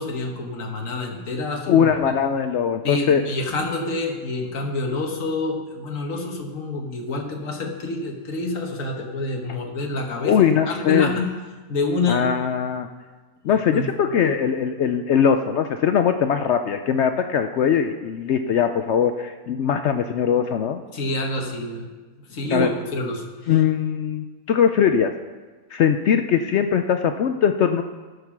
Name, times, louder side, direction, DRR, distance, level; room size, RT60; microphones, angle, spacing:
voice 1, 0.0-2.1 2.8-10.3 10.7-11.3 11.7-12.2 13.7-13.9 20.9-21.9 22.3-23.5, left 2 dB, 55° left, 2 dB, 1.7 m, -27 dB
voice 2, 1.7-3.2 10.2-11.1 12.1-12.9 13.4-20.8 22.5-22.7 23.5-25.1 25.7-27.8, left 8 dB, 75° left, 7 dB, 0.6 m, -20 dB
12.5 x 6.8 x 6.0 m, 1.3 s
omnidirectional pair, 1.7 m